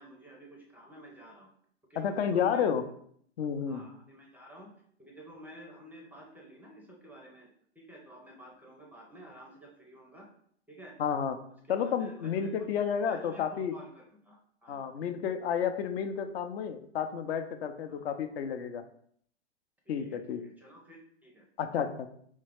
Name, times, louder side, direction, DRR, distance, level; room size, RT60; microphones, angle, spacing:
voice 1, 0.0-1.5 1.9-2.7 3.7-7.5 7.8-10.3 10.7-11.0 11.7-12.7 13.0-14.9 17.9-18.0 19.9-21.8, right 1 dB, 5° right, 0 dB, 0.4 m, -51 dB
voice 2, 2.0-2.8 3.4-3.9 11.0-11.4 11.7-13.7 14.7-18.8 19.9-20.4 21.6-22.1, left 7 dB, 60° left, 8 dB, 0.6 m, -31 dB
3.6 x 3.2 x 3.4 m, 0.64 s
hypercardioid pair, 125°, 34 cm